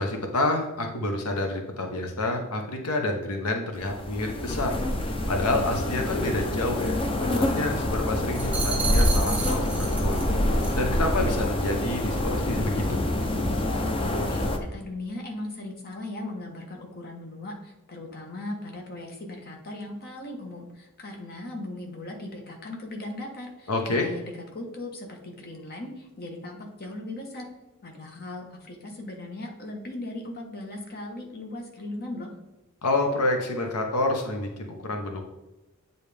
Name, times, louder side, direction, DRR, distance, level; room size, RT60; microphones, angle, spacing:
voice 1, 0.0-4.8 5.0-10.2 10.5-13.0 23.7-24.1 32.8-35.2, left 2 dB, 85° left, 3 dB, 0.9 m, -28 dB
sound 1, 3.8-14.6, left 1 dB, 25° left, 0.6 m, -26 dB
sound 2, 8.3-10.3 10.6-10.9, right 4 dB, 5° right, 1.1 m, -32 dB
voice 2, 14.0-27.5 27.8-32.3, left 2 dB, 45° left, 1 dB, 1.2 m, -38 dB
8.4 x 4.0 x 3.4 m, 1.0 s
head